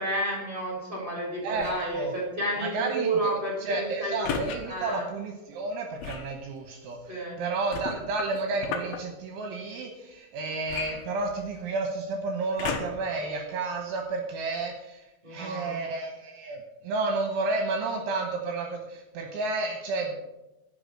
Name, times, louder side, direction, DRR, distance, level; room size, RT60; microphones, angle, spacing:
voice 1, 0.0-4.2 4.6-5.1 7.1-7.4 15.2-15.7, right 1 dB, 10° right, -3 dB, 3.5 m, -31 dB
voice 2, 1.4-2.1 2.6-3.3 3.6-20.3, right 3 dB, 75° right, 3 dB, 3.2 m, -31 dB
sound 1, 1.5-1.9 4.2-4.6 6.0-6.3 7.7-9.0 10.7-11.6 12.6-13.1 13.8-13.9, left 6 dB, 75° left, 2.2 m, -34 dB
10.5 x 7.0 x 7.6 m, 0.98 s
omnidirectional pair, 5.9 m